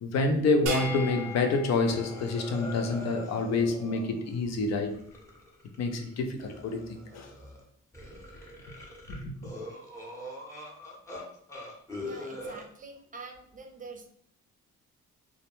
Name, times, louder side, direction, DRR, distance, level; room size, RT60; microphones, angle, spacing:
voice 1, 0.0-4.9 5.8-6.8 7.1-7.3 9.1-9.5, left 3 dB, 60° left, 0.5 m, -28 dB
sound 1, 0.7-3.2, equal, 80° right, 0.6 m, -37 dB
sound 2, 0.8-1.5 1.8-6.1 6.4-7.6 7.9-11.2 11.5-12.6, left 1 dB, 10° left, 0.7 m, -43 dB
voice 2, 12.1-14.1, right 4 dB, 25° right, 0.5 m, -45 dB
2.2 x 2.1 x 2.9 m
cardioid pair, 90°, 30 cm